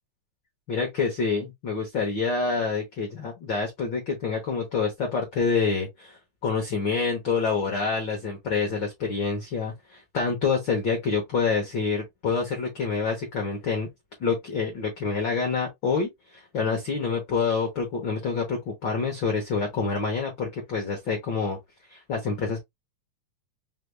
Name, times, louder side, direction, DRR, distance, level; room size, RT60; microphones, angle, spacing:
voice 1, 0.7-13.9 14.2-21.6 21.9-22.6, left 5 dB, 80° left, 1.0 m, -27 dB
4.9 x 2.3 x 3.2 m
omnidirectional pair, 3.7 m